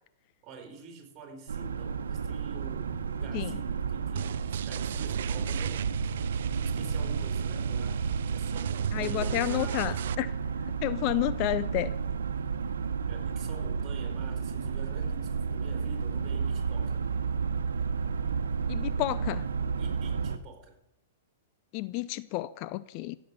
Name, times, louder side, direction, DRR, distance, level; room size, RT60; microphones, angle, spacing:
voice 1, 0.4-5.8 6.5-10.1 13.1-17.0 19.8-20.8, right 5 dB, 30° right, 4.3 m, -47 dB
sound 1, 1.5-20.4, right 6 dB, 90° right, 1.1 m, -32 dB
sound 2, 4.2-10.2, right 10 dB, 70° right, 0.5 m, -37 dB
voice 2, 8.9-10.3 10.8-11.9 18.7-19.4 21.7-23.2, left 17 dB, 45° left, 0.5 m, -30 dB
15.0 x 7.5 x 8.2 m
hypercardioid pair, 130°, 0 cm